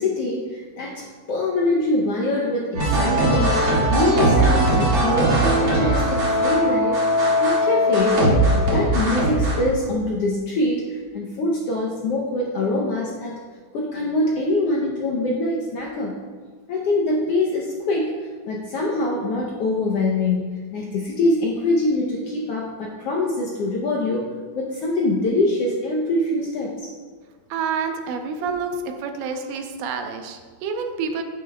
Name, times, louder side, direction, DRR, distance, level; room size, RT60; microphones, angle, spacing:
voice 1, 0.0-7.0 7.4-13.4 13.7-16.1 16.7-18.1 18.5-24.2 24.5-26.9, left 2 dB, 75° left, -2 dB, 1.4 m, -24 dB
sound 1, 2.7-9.6, right 1 dB, 45° right, 2.5 m, -19 dB
voice 2, 27.5-28.7 29.0-31.2, right 6 dB, 85° right, 5 dB, 2.2 m, -28 dB
9.4 x 9.4 x 2.3 m, 1.5 s
omnidirectional pair, 3.6 m